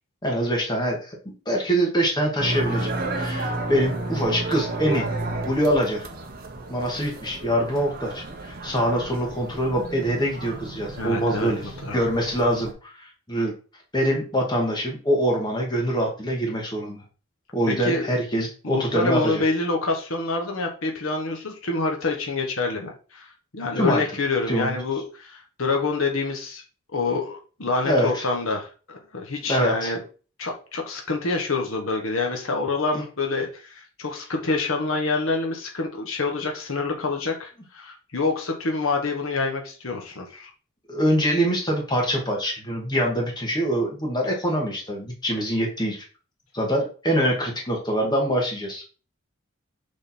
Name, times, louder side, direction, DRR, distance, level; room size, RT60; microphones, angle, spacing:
voice 1, 0.2-5.1 5.4-6.1 6.7-11.6 11.9-13.5 13.9-17.0 17.5-19.4 23.8-24.0 24.5-24.8 27.9-28.3 29.5-29.9 32.9-33.0 40.9-46.0 46.5-48.9, equal, 20° left, 0 dB, 1.7 m, -24 dB
sound 1, 2.4-12.7, right 2 dB, 45° right, 1.2 m, -32 dB
voice 2, 11.0-12.0 17.7-18.1 18.6-26.6 26.9-30.0 30.4-40.5, left 3 dB, 75° left, 2 dB, 1.3 m, -27 dB
6.4 x 3.9 x 4.3 m, 0.36 s
head